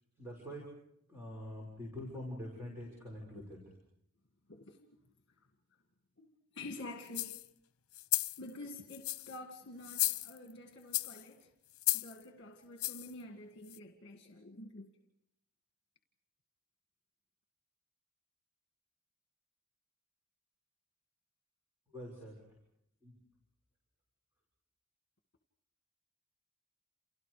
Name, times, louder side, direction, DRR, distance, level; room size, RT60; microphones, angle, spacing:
voice 1, 0.2-0.7 1.1-3.6 21.9-22.4 23.0-23.1, left 1 dB, 10° right, 6.6 m, -45 dB
voice 2, 4.5-5.0 6.2-7.4 8.4-11.5 11.9-14.9, left 2 dB, 50° left, 2.1 m, -48 dB
sound 1, 7.1-7.4 7.9-8.4 8.9-9.4 9.8-10.5 10.9-11.2 11.8-12.1 12.8-13.1 13.7-13.8, left 17 dB, 75° left, 0.9 m, -34 dB
30.0 x 29.5 x 5.1 m
head